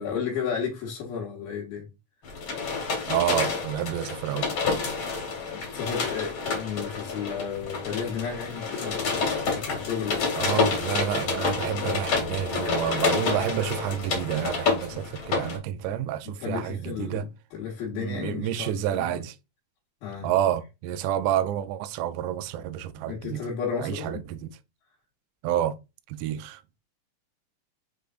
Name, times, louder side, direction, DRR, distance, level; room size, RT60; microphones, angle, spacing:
voice 1, 0.0-1.8 5.5-10.5 14.9-15.0 16.2-19.2 20.0-20.3 23.1-24.2, left 7 dB, 85° left, 3.0 m, -33 dB
sound 1, 2.2-15.6, left 4 dB, 55° left, 1.6 m, -29 dB
voice 2, 3.1-4.5 10.4-17.3 17.9-19.4 20.2-23.4 23.8-24.5 25.4-25.8 26.1-26.6, right 11 dB, 80° right, 1.8 m, -29 dB
6.4 x 3.3 x 2.4 m
omnidirectional pair, 4.0 m